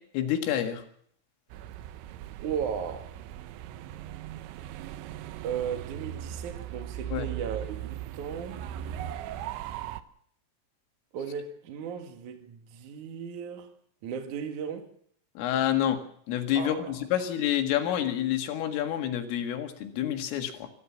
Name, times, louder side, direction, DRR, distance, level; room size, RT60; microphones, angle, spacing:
voice 1, 0.1-0.8 7.1-7.3 15.4-16.0 16.3-20.7, left 11 dB, 80° left, 4.4 m, -28 dB
sound 1, 1.5-10.0, right 12 dB, 75° right, 2.9 m, -39 dB
voice 2, 2.4-3.1 5.4-8.7 11.1-13.7 14.0-14.9 16.6-17.0, right 7 dB, 50° right, 2.6 m, -36 dB
25.5 x 14.5 x 7.2 m
omnidirectional pair, 5.8 m